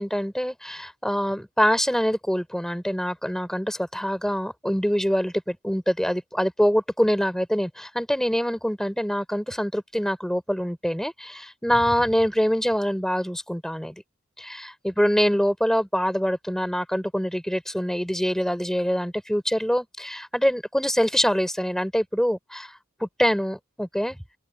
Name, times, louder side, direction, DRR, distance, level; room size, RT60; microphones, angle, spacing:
voice 1, 0.0-13.9 14.4-22.7 23.0-24.2, equal, 5° left, 4.4 m, -24 dB
open air
head